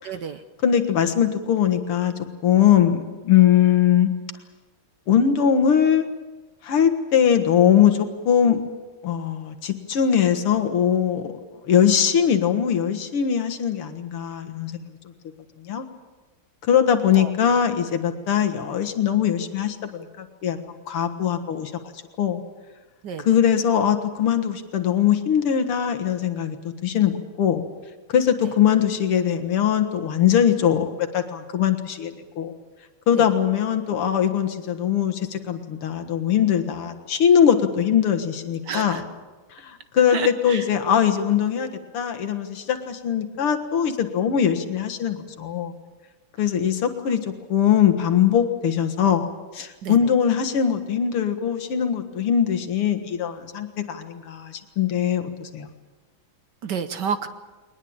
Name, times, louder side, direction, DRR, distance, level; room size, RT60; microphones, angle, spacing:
voice 1, 0.0-0.4 17.1-17.3 23.0-23.3 28.4-28.5 33.2-33.3 38.6-39.0 40.1-40.7 49.8-50.1 56.6-57.3, right 7 dB, 60° right, 11 dB, 1.4 m, -30 dB
voice 2, 0.6-2.1 2.4-4.1 5.1-6.1 6.6-8.6 9.0-11.4 11.6-14.7 15.6-15.9 16.7-20.6 20.9-21.7 22.2-22.4 23.3-26.6 26.8-27.6 28.1-32.1 32.4-32.5 33.1-39.0 39.6-45.7 46.4-49.3 49.5-55.7, left 9 dB, 80° left, 8 dB, 2.5 m, -21 dB
21.5 x 20.0 x 8.8 m, 1.2 s
omnidirectional pair, 2.4 m